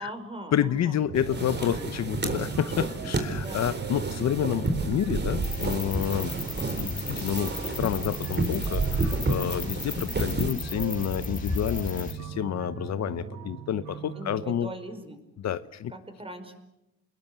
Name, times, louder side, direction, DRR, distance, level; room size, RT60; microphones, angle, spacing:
voice 1, 0.0-1.4 1.7-1.8 3.3-3.8 14.1-15.2 15.9-16.6, right 1 dB, 20° right, 7 dB, 5.1 m, -41 dB
voice 2, 0.5-6.3 6.7-14.7 15.4-15.9, left 10 dB, 60° left, 14 dB, 1.0 m, -29 dB
sound 1, 1.1-10.5, right 3 dB, 35° right, 4.1 m, -31 dB
sound 2, 1.1-14.5, right 7 dB, 85° right, 3.5 m, -40 dB
sound 3, 5.4-12.1, left 3 dB, 25° left, 3.8 m, -35 dB
28.0 x 21.0 x 8.3 m, 0.92 s
cardioid pair, 90°, 30 cm